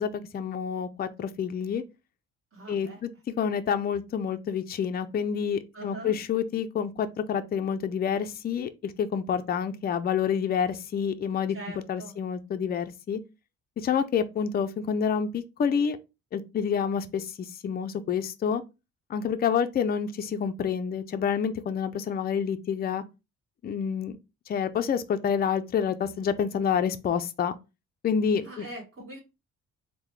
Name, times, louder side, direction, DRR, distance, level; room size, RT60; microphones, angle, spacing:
voice 1, 0.0-1.8 2.7-3.1 3.4-11.6 11.9-13.2 13.8-16.0 16.3-18.6 19.1-23.0 23.6-24.2 24.5-27.5 28.0-28.7, left 7 dB, 30° left, 0.4 m, -28 dB
voice 2, 2.5-3.0 5.7-6.2 11.5-12.1 28.4-29.2, right 2 dB, 45° right, 1.5 m, -42 dB
3.7 x 2.2 x 3.1 m
cardioid pair, 90°, 30 cm